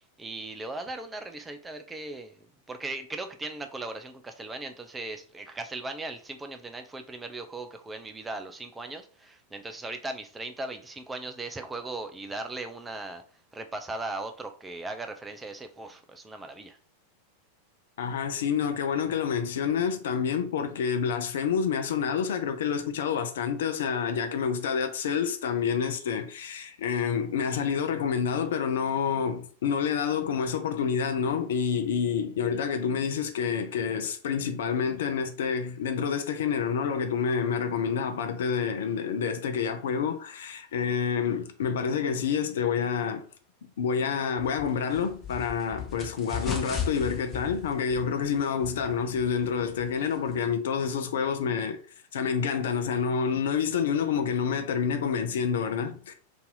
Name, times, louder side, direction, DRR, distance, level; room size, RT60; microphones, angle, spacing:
voice 1, 0.2-2.4 2.7-13.2 13.5-16.8, right 2 dB, 10° right, 0.5 m, -38 dB
voice 2, 18.0-43.2 43.8-51.8 52.1-56.1, left 6 dB, 60° left, 0.4 m, -28 dB
sound 1, 44.4-50.5, left 6 dB, 20° left, 0.9 m, -38 dB
2.7 x 2.6 x 3.7 m
figure-of-eight pair, 90°, 0 cm